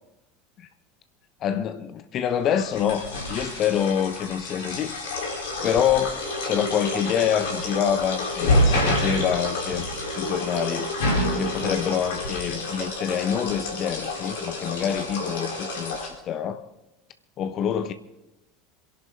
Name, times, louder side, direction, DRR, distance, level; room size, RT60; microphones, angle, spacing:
voice 1, 1.4-5.3 5.6-10.9 11.4-16.7 17.4-17.9, left 9 dB, 40° left, 1.1 m, -26 dB
sound 1, 2.5-16.1, left 1 dB, 65° left, 4.4 m, -28 dB
27.5 x 11.5 x 4.0 m
figure-of-eight pair, 75°, 0 cm